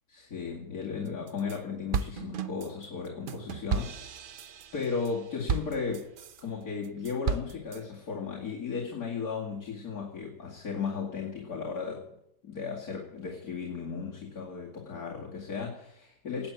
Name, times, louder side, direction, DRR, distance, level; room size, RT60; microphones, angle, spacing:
voice 1, 0.1-4.3 4.7-6.1 6.4-12.1 12.4-16.5, left 5 dB, 60° left, -4 dB, 2.8 m, -35 dB
sound 1, 1.1-1.6 1.9-6.4 6.8-7.8, right 6 dB, 90° right, 0.4 m, -34 dB
18.5 x 8.8 x 7.4 m, 0.78 s
omnidirectional pair, 1.8 m